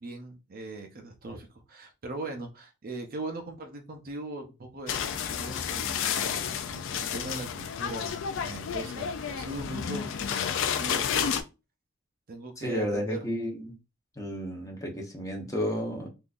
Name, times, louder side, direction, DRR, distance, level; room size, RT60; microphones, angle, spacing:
voice 1, 0.0-11.4 12.3-13.2, right 2 dB, 45° right, 0.6 m, -40 dB
sound 1, 4.9-11.4, left 7 dB, 65° left, 0.4 m, -31 dB
voice 2, 12.6-13.7 14.2-16.1, equal, 15° left, 0.8 m, -32 dB
3.6 x 2.6 x 2.4 m
head